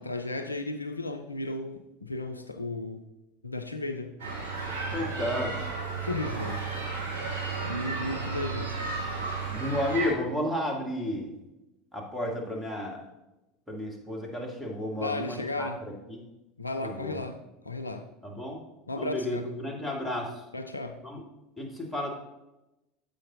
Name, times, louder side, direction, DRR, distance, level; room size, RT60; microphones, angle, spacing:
voice 1, 0.0-3.0 3.4-4.2 6.0-6.6 7.6-8.8 15.0-15.8 16.6-17.4 17.7-18.1 18.9-19.5 20.5-21.0, left 2 dB, 90° left, 7 dB, 0.4 m, -34 dB
sound 1, 4.2-10.1, right 4 dB, 65° right, 2.1 m, -33 dB
voice 2, 4.9-5.6 9.5-11.3 11.9-13.0 13.7-16.2 16.8-17.2 18.2-18.6 19.0-20.4 21.0-21.2 21.6-22.1, left 1 dB, 5° right, -1 dB, 1.8 m, -32 dB
7.6 x 5.1 x 3.8 m, 0.96 s
figure-of-eight pair, 75°, 0 cm